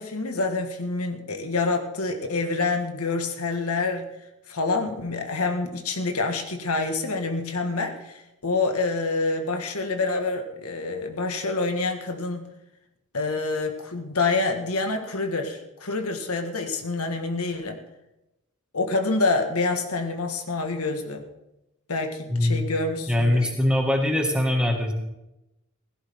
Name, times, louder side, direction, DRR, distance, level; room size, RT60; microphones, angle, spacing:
voice 1, 0.0-4.1 4.5-12.5 13.1-17.8 18.7-21.3 21.9-23.5, left 3 dB, 85° left, 4 dB, 1.9 m, -27 dB
voice 2, 22.3-22.6 23.1-24.9, left 1 dB, 5° right, 1 dB, 2.1 m, -22 dB
16.5 x 15.5 x 3.8 m, 0.92 s
head